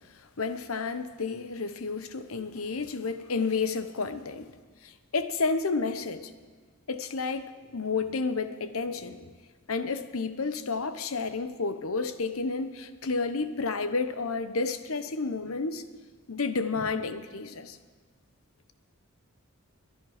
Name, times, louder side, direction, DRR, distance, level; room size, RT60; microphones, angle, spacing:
voice 1, 0.4-4.5 4.8-6.3 6.9-9.3 9.7-15.8 16.3-17.8, left 4 dB, 75° left, 10 dB, 0.9 m, -31 dB
22.5 x 10.0 x 5.0 m, 1.5 s
head